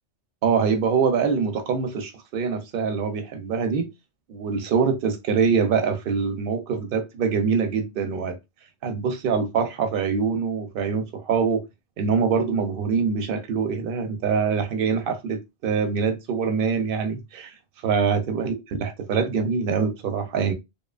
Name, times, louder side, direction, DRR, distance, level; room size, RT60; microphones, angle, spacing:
voice 1, 0.4-3.9 4.3-8.4 8.8-11.7 12.0-17.5 17.8-20.5, right 6 dB, 60° right, 0.7 m, -24 dB
2.7 x 2.2 x 2.3 m
omnidirectional pair, 1.2 m